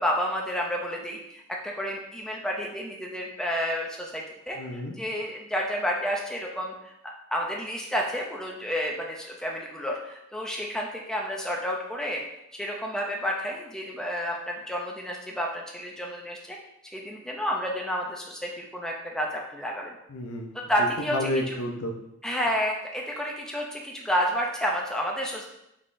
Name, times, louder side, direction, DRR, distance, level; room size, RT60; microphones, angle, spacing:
voice 1, 0.0-12.2 12.5-16.6 16.9-20.0 20.5-21.5 22.2-25.4, equal, 5° left, -1 dB, 0.4 m, -30 dB
voice 2, 4.5-5.0 20.1-20.5 21.1-21.9, left 1 dB, 70° left, 3 dB, 0.6 m, -30 dB
5.2 x 3.5 x 2.6 m, 0.84 s
head